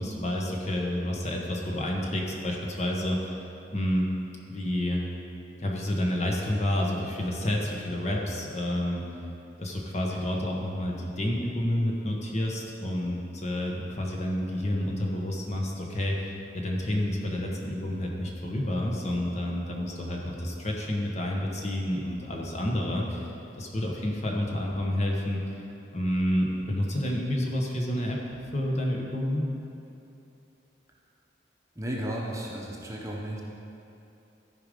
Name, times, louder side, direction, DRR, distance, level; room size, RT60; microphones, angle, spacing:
voice 1, 0.0-3.3 3.7-4.1 4.5-5.0 5.6-9.0 9.6-23.3 23.6-25.4 25.9-28.2 28.5-29.5, left 1 dB, 35° left, -1 dB, 1.1 m, -29 dB
voice 2, 31.8-33.4, right 1 dB, 15° right, -3 dB, 0.9 m, -34 dB
13.5 x 5.1 x 5.2 m, 2.9 s
head